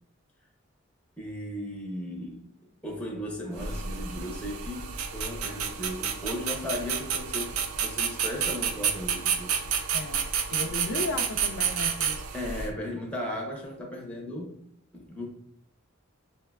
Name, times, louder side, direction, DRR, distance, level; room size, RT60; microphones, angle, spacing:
voice 1, 1.2-9.6 12.3-14.6 14.9-15.3, left 1 dB, 5° left, -1 dB, 0.6 m, -36 dB
sound 1, 3.5-12.7, right 7 dB, 75° right, 0.4 m, -30 dB
voice 2, 9.9-10.2 10.5-12.2, left 3 dB, 60° left, 5 dB, 0.3 m, -34 dB
5.4 x 2.1 x 2.3 m, 0.71 s
head